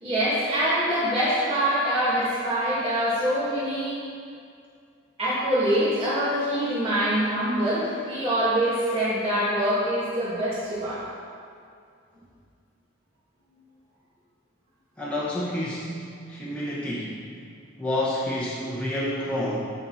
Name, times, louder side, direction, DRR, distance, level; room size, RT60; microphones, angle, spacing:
voice 1, 0.0-4.0 5.2-11.0, right 1 dB, 30° right, -11 dB, 2.3 m, -24 dB
voice 2, 15.0-16.0 16.3-17.2 17.8-19.6, left 1 dB, 5° left, -8 dB, 1.2 m, -29 dB
8.5 x 6.6 x 4.3 m, 2.3 s
head